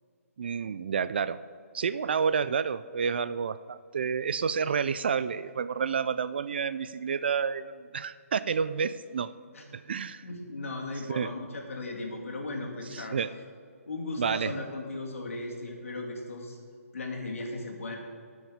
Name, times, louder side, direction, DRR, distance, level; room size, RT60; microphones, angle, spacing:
voice 1, 0.4-1.4 1.7-9.3 9.7-10.2 11.1-11.3 12.9-13.3 14.2-14.5, right 6 dB, 40° right, 15 dB, 0.3 m, -29 dB
voice 2, 10.2-13.2 13.9-16.6 16.9-18.0, left 2 dB, 60° left, 0 dB, 2.7 m, -37 dB
18.5 x 6.3 x 5.0 m, 2.2 s
hypercardioid pair, 165°, 8 cm